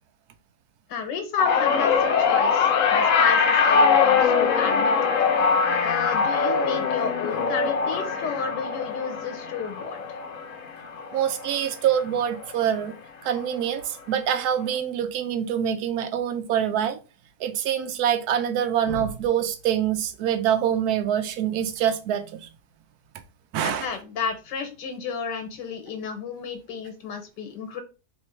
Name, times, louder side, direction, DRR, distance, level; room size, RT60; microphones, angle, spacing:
voice 1, 0.9-5.0 5.8-10.0 23.6-27.8, left 6 dB, 85° left, 1.6 m, -31 dB
sound 1, 1.4-11.8 12.2-12.6 13.7-13.8, left 5 dB, 60° left, 0.9 m, -22 dB
voice 2, 11.1-13.0 13.2-17.0 17.4-22.5 23.5-23.9, right 9 dB, 70° right, 1.1 m, -25 dB
3.2 x 3.2 x 4.3 m
omnidirectional pair, 1.8 m